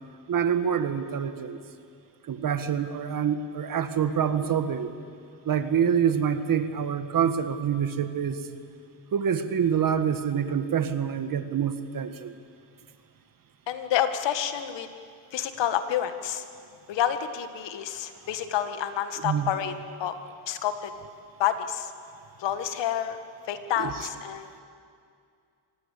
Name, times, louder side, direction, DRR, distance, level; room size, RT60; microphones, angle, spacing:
voice 1, 0.3-1.6 2.3-4.9 5.4-8.4 9.1-12.3 19.2-19.5 23.8-23.9, right 8 dB, 45° right, 10 dB, 1.7 m, -26 dB
voice 2, 13.7-14.9 15.3-16.5 16.9-20.2 20.5-20.9 21.4-21.9 22.4-23.2 23.5-24.6, left 10 dB, 70° left, 9 dB, 1.9 m, -29 dB
25.5 x 19.5 x 8.5 m, 2.3 s
cardioid pair, 105°, 44 cm